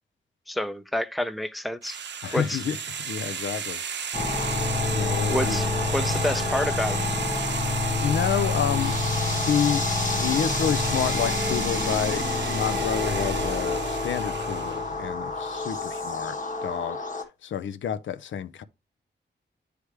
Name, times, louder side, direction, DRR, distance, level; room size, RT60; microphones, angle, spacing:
voice 1, 0.5-2.0 2.3-2.6 5.3-7.0, left 1 dB, ahead, 0.4 m, -28 dB
sound 1, 1.8-14.9, right 7 dB, 70° right, 0.6 m, -34 dB
voice 2, 2.2-3.8 4.2-5.6 8.0-9.0 9.3-9.8 10.1-17.0 17.4-18.6, left 8 dB, 90° left, 0.5 m, -29 dB
sound 2, 4.1-17.2, left 3 dB, 45° left, 1.1 m, -27 dB
9.4 x 3.3 x 3.2 m
wide cardioid pair, 105°, 19 cm